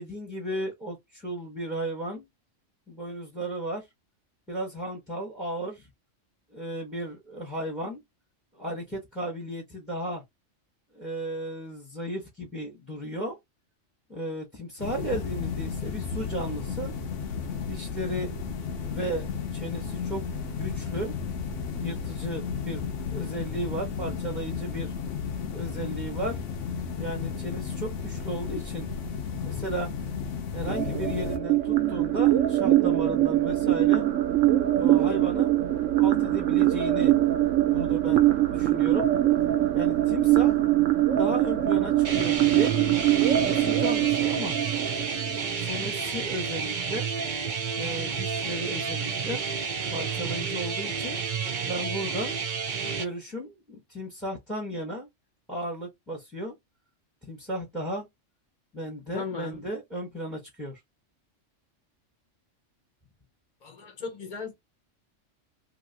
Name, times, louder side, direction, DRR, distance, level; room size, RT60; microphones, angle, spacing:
voice 1, 0.0-2.2 2.9-3.9 4.5-5.9 6.5-8.0 8.5-10.2 10.9-13.4 14.1-16.9 17.6-18.4 18.8-19.3 19.5-21.1 21.8-24.9 25.5-26.4 27.0-28.9 29.4-29.9 30.5-34.1 34.7-35.5 36.0-37.2 37.7-39.1 39.7-40.6 41.1-42.7 43.3-44.6 45.2-47.1 47.8-49.4 49.9-51.2 51.6-52.3 52.8-55.1 55.5-56.5 57.3-58.1 58.7-60.8, right 1 dB, ahead, 1.0 m, -34 dB
sound 1, 14.8-31.4, left 6 dB, 75° left, 1.0 m, -33 dB
sound 2, 30.7-45.6, right 13 dB, 80° right, 1.0 m, -23 dB
sound 3, 42.0-53.0, right 6 dB, 45° right, 0.8 m, -30 dB
voice 2, 59.1-59.5 63.6-64.6, left 5 dB, 40° left, 0.8 m, -36 dB
2.9 x 2.8 x 2.7 m
omnidirectional pair, 1.3 m